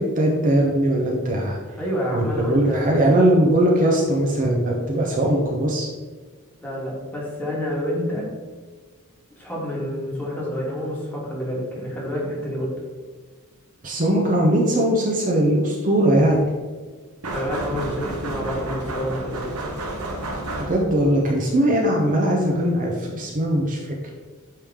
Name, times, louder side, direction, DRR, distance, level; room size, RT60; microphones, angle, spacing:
voice 1, 0.0-1.6 2.1-5.9 13.8-16.5 20.6-23.8, right 1 dB, 35° right, -1 dB, 0.8 m, -20 dB
voice 2, 1.8-3.0 6.6-8.3 9.3-12.7 17.2-19.5, equal, 10° left, -5 dB, 1.7 m, -28 dB
sound 1, 17.2-21.1, right 1 dB, 80° right, 1.1 m, -31 dB
8.4 x 3.3 x 3.6 m, 1.4 s
head